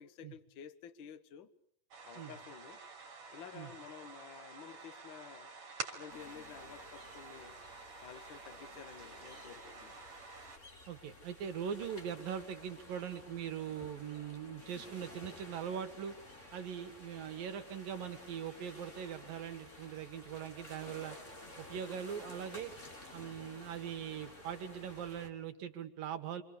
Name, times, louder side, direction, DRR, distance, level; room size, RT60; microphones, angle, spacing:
voice 1, 0.0-1.5 2.0-2.8 3.3-5.5 5.9-7.6 8.0-10.0, left 8 dB, 90° left, 10 dB, 1.0 m, -52 dB
sound 1, 1.9-10.6, right 5 dB, 55° right, 4.0 m, -49 dB
sound 2, 6.1-25.3, left 2 dB, 20° left, 3.3 m, -53 dB
voice 2, 10.9-16.1 16.5-21.2 21.6-22.7 23.1-26.4, right 8 dB, 80° right, 7 dB, 3.6 m, -41 dB
28.0 x 26.5 x 6.9 m, 0.72 s
omnidirectional pair, 4.0 m